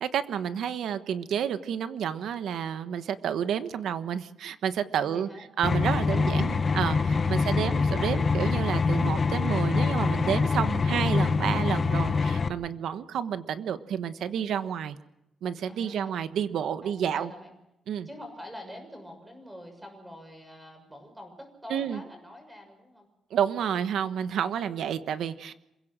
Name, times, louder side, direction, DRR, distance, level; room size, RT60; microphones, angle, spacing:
voice 1, 0.0-5.3 5.6-15.0 15.4-17.3 17.9-18.1 21.7-22.0 23.3-25.5, right 8 dB, 80° right, 11 dB, 1.2 m, -30 dB
voice 2, 5.0-5.5 6.0-6.8 14.5-14.8 15.7-16.1 16.8-17.5 18.0-23.1 24.2-24.8, left 1 dB, 5° right, 4 dB, 6.4 m, -46 dB
sound 1, 5.6-12.5, left 4 dB, 35° left, 0.9 m, -25 dB
27.5 x 16.5 x 6.2 m, 0.87 s
cardioid pair, 145°, 0 cm